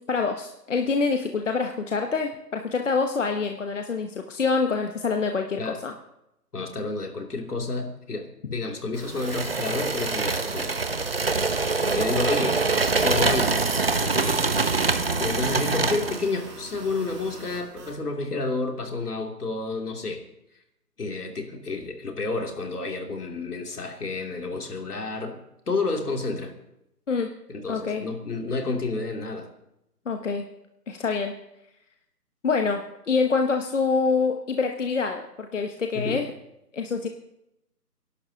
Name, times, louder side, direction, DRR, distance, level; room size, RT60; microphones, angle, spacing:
voice 1, 0.1-5.9 27.1-27.3 27.7-28.0 30.1-30.4 30.9-31.3 32.4-36.3 36.7-37.1, left 4 dB, 50° left, 4 dB, 1.1 m, -26 dB
voice 2, 6.5-10.9 11.9-12.6 12.9-13.6 14.0-14.5 14.9-20.2 21.0-25.4 25.7-26.5 27.5-29.5 35.9-36.2, left 3 dB, 70° left, 2 dB, 2.9 m, -30 dB
sound 1, 8.9-18.0, right 2 dB, 15° right, 2.2 m, -43 dB
sound 2, 9.2-16.3, right 3 dB, 40° right, 0.6 m, -24 dB
27.5 x 11.5 x 2.9 m, 0.84 s
figure-of-eight pair, 160°, 48 cm